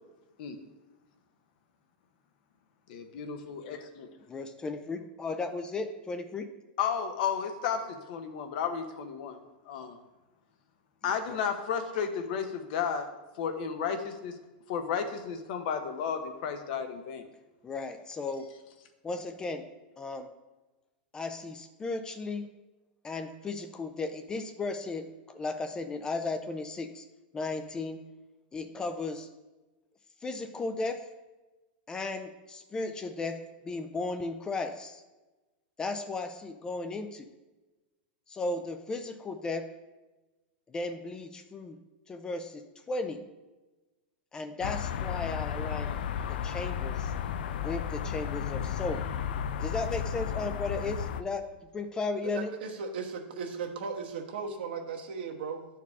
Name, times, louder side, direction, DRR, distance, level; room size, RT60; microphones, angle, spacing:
voice 1, 2.9-4.1 6.8-9.4 9.7-10.0 11.0-13.1 13.4-14.3 14.7-17.2, left 7 dB, 55° left, 7 dB, 0.9 m, -33 dB
voice 2, 4.3-6.5 11.0-11.4 17.6-18.5 19.0-19.6 20.0-20.3 21.1-22.5 23.0-27.0 27.3-28.0 28.5-29.3 30.2-31.0 31.9-33.4 33.6-35.0 35.8-37.3 38.3-39.6 40.7-41.8 42.1-42.6 42.9-43.2 44.3-45.9 46.3-47.1 47.6-49.0 49.6-51.4 51.7-52.5, left 3 dB, 15° left, 8 dB, 0.4 m, -35 dB
sound 1, 44.6-51.2, left 8 dB, 80° left, 0.4 m, -33 dB
voice 3, 52.2-55.7, right 5 dB, 75° right, 2 dB, 1.2 m, -37 dB
9.5 x 4.6 x 3.5 m, 1.1 s
supercardioid pair, 150°, 5 cm